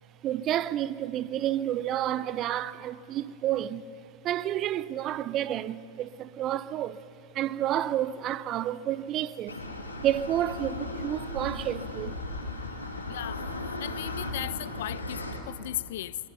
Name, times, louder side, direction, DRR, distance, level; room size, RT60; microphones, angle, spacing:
voice 1, 0.2-3.8 4.2-7.0 7.3-9.6 10.0-12.2, right 12 dB, 35° right, 0.6 m, -30 dB
sound 1, 9.5-15.4, left 2 dB, 80° left, 2.4 m, -36 dB
voice 2, 13.1-13.4 13.8-16.2, left 13 dB, 55° left, 0.6 m, -36 dB
28.5 x 23.5 x 5.7 m
figure-of-eight pair, 90°, 0 cm